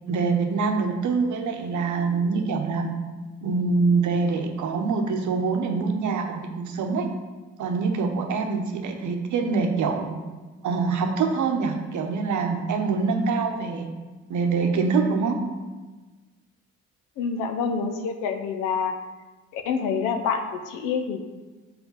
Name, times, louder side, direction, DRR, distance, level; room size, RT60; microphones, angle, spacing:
voice 1, 0.1-2.9 3.4-7.1 7.6-10.2 10.6-13.9 14.3-15.4, right 4 dB, 65° right, 4 dB, 0.9 m, -25 dB
voice 2, 17.2-18.9 19.5-21.2, left 6 dB, 85° left, 6 dB, 0.6 m, -27 dB
4.8 x 3.7 x 5.3 m, 1.3 s
hypercardioid pair, 50°, 32 cm